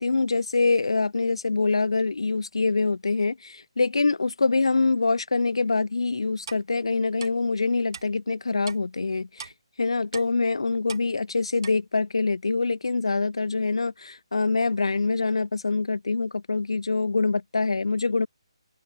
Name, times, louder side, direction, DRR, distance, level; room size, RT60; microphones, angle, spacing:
voice 1, 0.0-9.5 9.8-18.3, left 3 dB, 65° left, 0.6 m, -25 dB
Clock, 6.5-6.6 7.2-7.3 7.9-8.0 8.6-8.8 9.4-9.5 10.1-10.3 10.9-11.0 11.6-11.7, right 6 dB, 45° right, 2.5 m, -39 dB
figure-of-eight pair, 145°, 3 cm